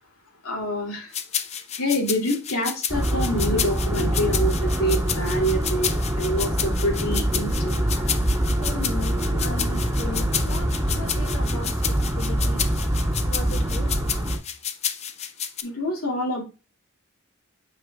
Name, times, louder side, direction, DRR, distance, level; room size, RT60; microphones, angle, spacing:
voice 1, 0.4-1.1 1.7-5.9 6.2-7.8 9.2-9.6 10.0-10.1 15.6-16.4, equal, 85° left, -1 dB, 2.6 m, -27 dB
sound 1, 1.1-15.6, left 9 dB, 30° left, 0.5 m, -30 dB
sound 2, 2.9-14.4, right 1 dB, 15° right, 2.4 m, -24 dB
voice 2, 8.6-12.6 13.3-13.9, left 1 dB, 65° left, 2 dB, 1.8 m, -37 dB
7.1 x 5.8 x 2.3 m, 0.30 s
head